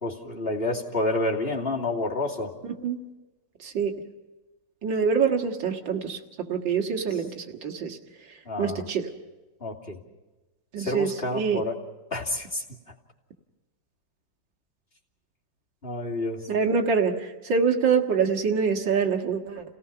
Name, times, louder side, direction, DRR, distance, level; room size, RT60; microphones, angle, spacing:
voice 1, 0.0-2.5 7.1-7.2 8.5-8.9 9.6-10.0 10.8-11.8 12.1-12.6 15.8-16.5, left 2 dB, 30° left, -2 dB, 2.8 m, -29 dB
voice 2, 3.6-4.0 4.8-6.2 6.5-8.0 8.6-9.1 10.7-11.6 16.5-19.6, right 6 dB, 80° right, 3 dB, 2.5 m, -25 dB
30.0 x 18.0 x 5.7 m, 1.1 s
omnidirectional pair, 2.0 m